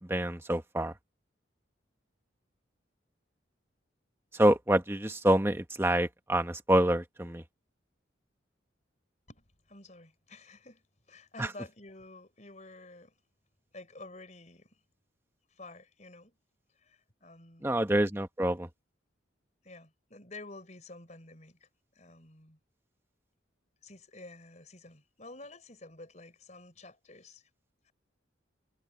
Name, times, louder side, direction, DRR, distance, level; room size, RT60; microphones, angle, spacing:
voice 1, 0.1-0.9 4.3-7.4 11.4-11.5 17.6-18.7, right 1 dB, 15° right, 1.2 m, -27 dB
voice 2, 9.3-13.2 13.7-14.8 15.5-16.3 16.8-17.8 19.6-22.6 23.8-27.5 27.8-27.9, left 2 dB, 40° left, 4.5 m, -50 dB
head